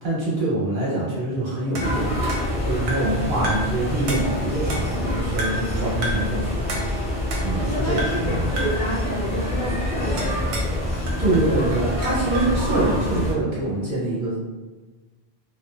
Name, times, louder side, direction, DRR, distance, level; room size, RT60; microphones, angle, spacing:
voice 1, 0.0-6.8 7.1-8.5 11.2-14.5, right 2 dB, 55° right, -7 dB, 1.0 m, -25 dB
sound 1, 1.8-13.3, left 1 dB, 10° left, 0.4 m, -26 dB
sound 2, 1.8-3.2 3.4-3.8 4.1-5.1 5.4-5.7 6.0-6.3 6.7-7.7 8.0-8.3 8.6-8.9 10.2-10.8 11.1-12.5, right 1 dB, 80° right, 0.8 m, -32 dB
voice 2, 7.5-10.5, equal, 50° left, -5 dB, 0.7 m, -29 dB
2.5 x 2.1 x 2.3 m, 1.2 s
omnidirectional pair, 1.1 m